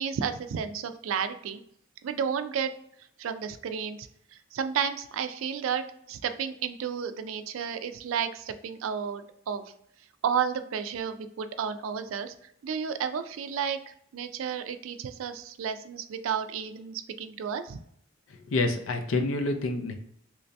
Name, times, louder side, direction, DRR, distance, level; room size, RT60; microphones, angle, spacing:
voice 1, 0.0-1.6 2.0-2.7 3.2-4.1 4.5-9.6 10.2-12.3 12.6-17.8, right 7 dB, 80° right, 10 dB, 0.3 m, -32 dB
voice 2, 18.5-19.9, left 2 dB, 85° left, 6 dB, 0.5 m, -27 dB
3.1 x 2.6 x 3.2 m, 0.69 s
head